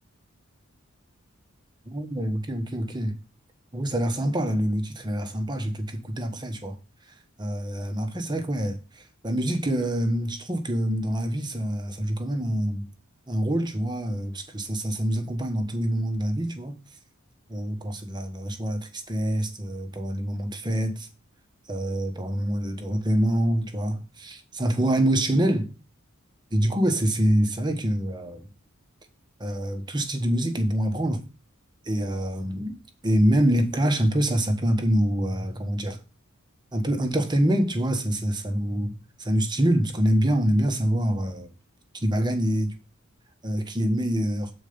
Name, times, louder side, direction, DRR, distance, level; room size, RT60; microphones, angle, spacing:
voice 1, 1.8-3.2 3.7-6.8 7.4-12.9 13.3-16.8 17.5-21.1 21.7-25.7 26.5-28.5 29.4-31.2 31.8-32.8 33.0-36.0 36.7-41.5 42.0-42.7 43.4-44.5, right 1 dB, 20° right, 1.1 m, -25 dB
8.2 x 4.5 x 5.1 m
head